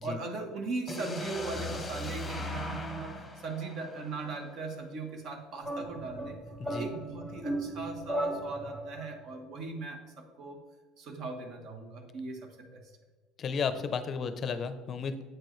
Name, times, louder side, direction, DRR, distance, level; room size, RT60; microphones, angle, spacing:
voice 1, 0.0-3.1 3.4-6.4 6.7-10.6 11.0-12.9, right 3 dB, 50° right, 5 dB, 1.0 m, -39 dB
sound 1, 0.9-4.8, left 1 dB, 10° left, 0.9 m, -39 dB
sound 2, 5.6-9.1, right 1 dB, 15° right, 1.9 m, -36 dB
voice 2, 13.4-15.2, left 5 dB, 35° left, 10 dB, 0.5 m, -33 dB
7.8 x 4.5 x 3.1 m, 1.2 s
cardioid pair, 125°, 0 cm